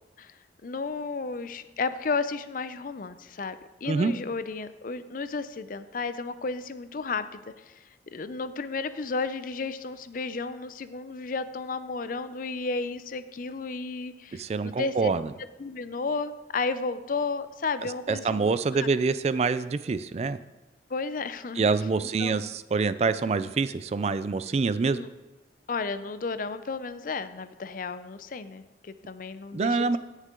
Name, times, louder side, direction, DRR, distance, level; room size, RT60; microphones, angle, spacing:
voice 1, 0.6-7.8 8.1-15.1 15.6-18.5 18.8-18.9 20.9-21.6 22.0-22.4 24.9-25.1 25.7-30.0, left 4 dB, 50° left, 13 dB, 0.5 m, -33 dB
voice 2, 14.3-15.3 18.1-20.4 21.6-25.0 29.5-30.0, right 4 dB, 35° right, 14 dB, 0.3 m, -26 dB
16.5 x 6.5 x 3.7 m, 1.1 s
head